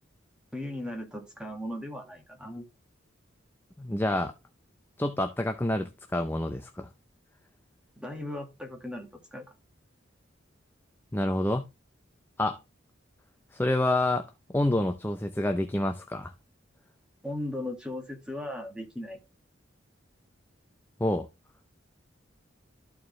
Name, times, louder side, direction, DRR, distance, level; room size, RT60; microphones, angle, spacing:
voice 1, 0.5-2.6 8.0-9.5 17.2-19.2, left 1 dB, 5° right, 1.8 m, -37 dB
voice 2, 3.8-4.3 5.0-6.9 11.1-11.7 12.4-12.6 13.5-14.3 14.5-16.3 21.0-21.3, left 1 dB, 10° left, 0.5 m, -27 dB
13.0 x 4.7 x 3.1 m
head